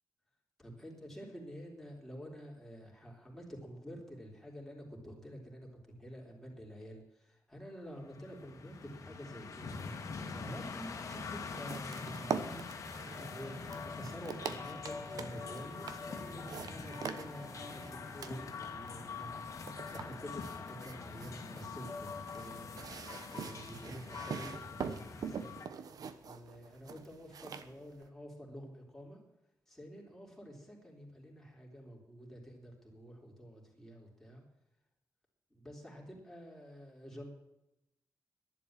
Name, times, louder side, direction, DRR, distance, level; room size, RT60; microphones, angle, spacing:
voice 1, 0.6-9.8 10.3-12.6 13.0-22.7 23.3-25.6 26.2-29.2 29.7-34.4 35.5-37.3, equal, 5° left, -1 dB, 3.6 m, -49 dB
sound 1, 8.1-25.7, left 5 dB, 55° left, 1.7 m, -44 dB
sound 2, 11.1-28.1, right 6 dB, 75° right, 1.1 m, -45 dB
sound 3, 15.2-22.2, right 2 dB, 60° right, 5.1 m, -58 dB
11.5 x 11.0 x 7.4 m, 0.89 s
wide cardioid pair, 145°, 6 cm